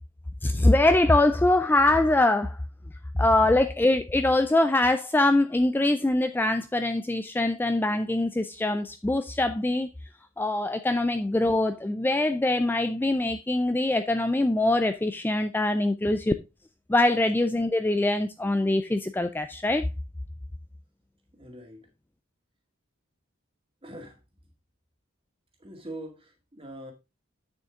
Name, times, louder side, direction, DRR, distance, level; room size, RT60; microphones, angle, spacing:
voice 1, 0.4-2.6 3.2-9.9 10.4-16.2 16.9-19.9, left 2 dB, 10° left, 0.3 m, -23 dB
voice 2, 21.3-21.9 23.8-24.2 25.6-26.9, right 1 dB, 25° right, 2.0 m, -42 dB
8.8 x 6.5 x 3.7 m
head